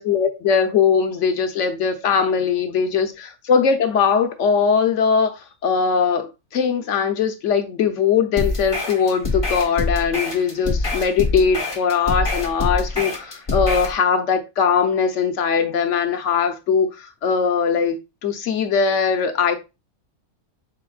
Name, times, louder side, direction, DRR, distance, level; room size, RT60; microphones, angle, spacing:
voice 1, 0.0-18.0 18.2-19.5, left 6 dB, 65° left, 1.0 m, -20 dB
sound 1, 8.4-14.0, left 3 dB, 25° left, 0.7 m, -25 dB
5.7 x 3.9 x 2.3 m
omnidirectional pair, 1.4 m